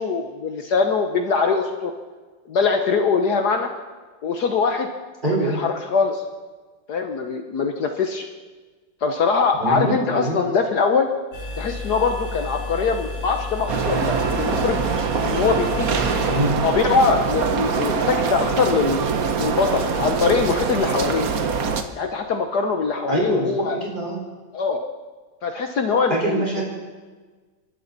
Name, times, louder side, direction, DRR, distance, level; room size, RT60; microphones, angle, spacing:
voice 1, 0.0-1.9 2.5-3.7 4.2-4.9 5.3-6.2 6.9-8.2 9.0-11.1 11.6-14.8 15.2-15.9 16.6-19.0 19.4-21.3 21.9-23.8 24.5-24.8 25.4-26.6, left 5 dB, 60° left, 5 dB, 1.5 m, -22 dB
voice 2, 5.2-5.6 9.6-10.3 16.3-16.5 23.1-24.2 26.1-26.6, right 2 dB, 25° right, -4 dB, 4.7 m, -24 dB
sound 1, 11.3-16.4, left 3 dB, 80° left, 3.7 m, -32 dB
sound 2, 13.7-21.8, right 5 dB, 55° right, 1.4 m, -23 dB
28.0 x 12.5 x 4.1 m, 1.4 s
omnidirectional pair, 2.1 m